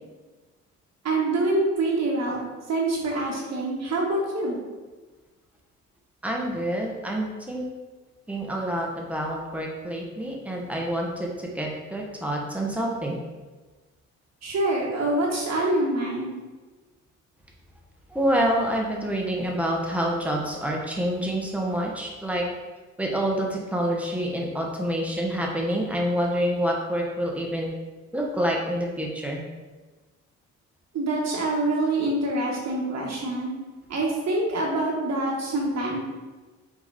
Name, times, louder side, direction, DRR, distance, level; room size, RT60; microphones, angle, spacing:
voice 1, 1.0-2.4 2.7-4.6 14.4-16.3 30.9-33.5 33.9-36.0, right 2 dB, 60° right, -2 dB, 1.6 m, -25 dB
voice 2, 6.2-7.7 8.3-13.2 18.1-22.4 23.0-27.7 28.1-29.4, equal, 5° right, -1 dB, 1.4 m, -27 dB
5.7 x 4.1 x 4.2 m, 1.3 s
cardioid pair, 90°, 30 cm